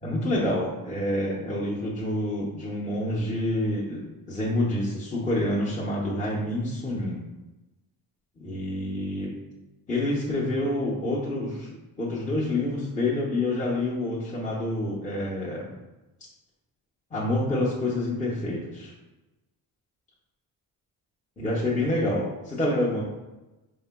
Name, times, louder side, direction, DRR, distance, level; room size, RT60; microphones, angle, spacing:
voice 1, 0.0-7.2 8.4-9.3 9.9-15.7 17.1-18.9 21.4-23.0, left 1 dB, 20° left, -7 dB, 0.9 m, -27 dB
4.7 x 3.6 x 2.2 m, 1.0 s
cardioid pair, 95°, 38 cm